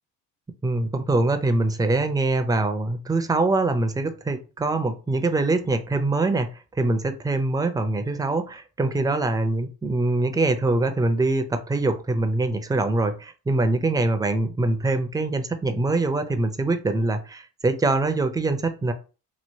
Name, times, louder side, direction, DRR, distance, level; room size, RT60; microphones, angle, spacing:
voice 1, 0.6-6.5 6.8-18.9, right 2 dB, 10° right, 8 dB, 0.5 m, -23 dB
3.0 x 2.8 x 2.7 m, 0.34 s
supercardioid pair, 65°, 42 cm